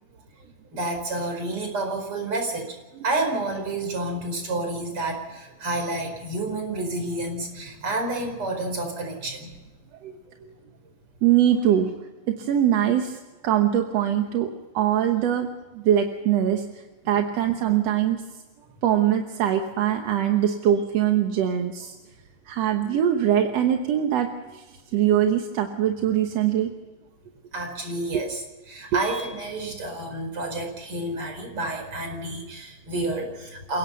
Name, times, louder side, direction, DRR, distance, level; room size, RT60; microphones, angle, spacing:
voice 1, 0.7-2.8 3.0-9.6 10.4-10.5 27.5-28.4 28.7-33.8, right 2 dB, 45° right, 4 dB, 5.6 m, -29 dB
voice 2, 11.2-11.9 12.3-18.2 18.8-21.9 22.5-26.7 28.1-28.2 28.9-29.0, right 10 dB, 60° right, 5 dB, 2.1 m, -23 dB
29.0 x 17.5 x 5.6 m, 1.2 s
omnidirectional pair, 3.6 m